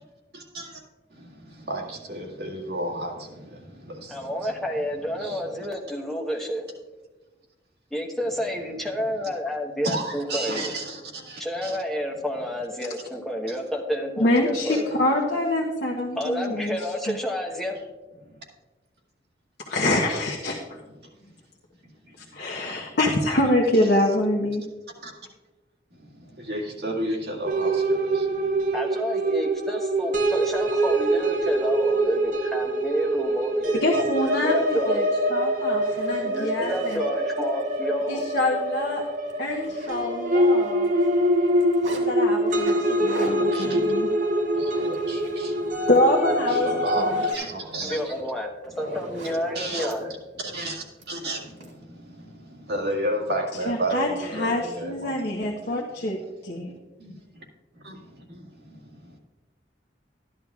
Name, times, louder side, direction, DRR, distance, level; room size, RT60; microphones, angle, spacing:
voice 1, 0.3-0.8 1.1-4.5 5.2-5.4 9.8-11.8 14.7-14.8 18.2-18.3 22.1-22.2 22.4-23.0 25.0-25.1 25.9-28.6 43.5-43.9 44.5-45.9 46.5-48.2 48.9-49.0 49.5-50.2 50.4-56.2 56.5-56.6 57.0-57.4 57.8-59.2, right 1 dB, 65° right, -1 dB, 2.0 m, -33 dB
voice 2, 4.1-6.7 7.9-10.7 11.4-14.9 16.2-17.8 28.7-33.8 34.1-35.1 36.2-38.3 47.8-50.0, equal, ahead, 0 dB, 1.1 m, -30 dB
voice 3, 14.2-16.8 17.1-17.2 19.7-20.8 22.3-24.6 33.8-35.0 35.3-37.0 38.1-39.0 39.4-40.9 41.9-44.1 45.9-47.0 53.7-56.2 56.4-56.7, left 1 dB, 60° left, -1 dB, 1.0 m, -25 dB
sound 1, 27.5-47.3, right 1 dB, 45° right, 0.9 m, -24 dB
Zipper (clothing), 35.2-35.3 35.7-37.0 37.6-37.8 38.1-38.3 38.6-38.7 39.1-40.4 40.6-42.0 42.5-45.4 45.8-46.0 46.4-50.0 51.0-51.7, right 1 dB, 85° right, 2.4 m, -41 dB
13.0 x 11.0 x 2.4 m, 1.2 s
head